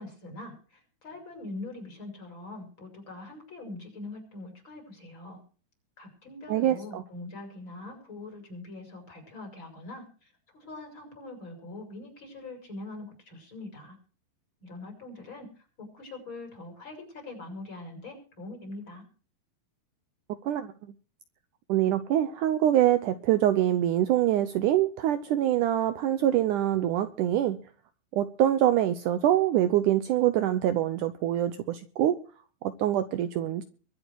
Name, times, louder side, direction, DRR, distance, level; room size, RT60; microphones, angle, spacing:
voice 1, 0.0-5.4 6.0-14.0 14.6-19.0, left 2 dB, 30° left, 6.2 m, -43 dB
voice 2, 6.5-7.0 20.4-20.7 21.7-27.6 28.1-32.2 32.6-33.6, right 12 dB, 90° right, 1.7 m, -25 dB
23.5 x 8.1 x 4.6 m
omnidirectional pair, 4.7 m